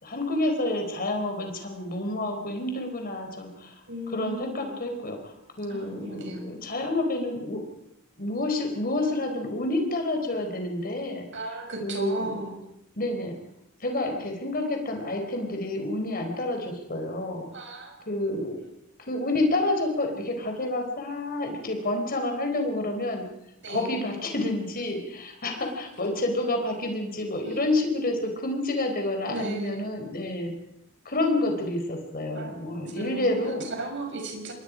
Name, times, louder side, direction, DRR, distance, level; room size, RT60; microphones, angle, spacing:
voice 1, 0.0-3.7 4.1-7.6 8.2-11.2 11.8-12.4 13.0-13.3 13.8-17.5 18.1-18.6 19.1-23.2 23.7-30.5 31.0-33.6, left 2 dB, 45° left, 4 dB, 4.1 m, -29 dB
voice 2, 3.9-4.8 5.7-6.5 11.3-12.6 17.5-17.9 23.6-23.9 27.4-27.6 29.3-29.8 32.3-32.5 32.8-34.5, right 2 dB, 60° right, 2 dB, 6.6 m, -36 dB
26.5 x 22.0 x 5.1 m, 0.81 s
head